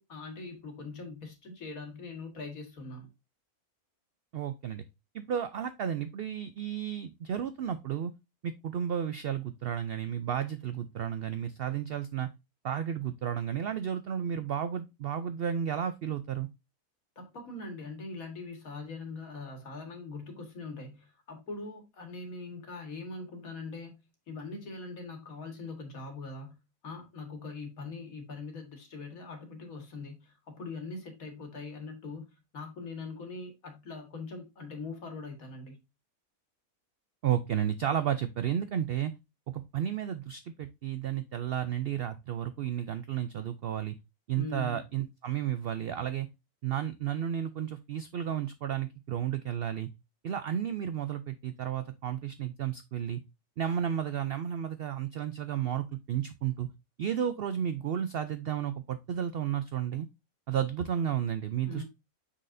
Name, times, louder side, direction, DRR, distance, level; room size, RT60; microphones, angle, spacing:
voice 1, 0.0-3.1 17.2-24.0 24.3-35.8 44.4-44.8 61.6-61.8, left 3 dB, 70° left, 2.0 m, -42 dB
voice 2, 4.3-4.8 5.1-8.1 8.4-12.3 12.6-16.5 37.2-39.1 39.5-43.9 44.3-46.3 46.6-49.9 50.2-53.2 53.6-56.7 57.0-60.1 60.5-61.8, right 9 dB, 80° right, 0.5 m, -32 dB
6.3 x 5.7 x 2.6 m
omnidirectional pair, 1.6 m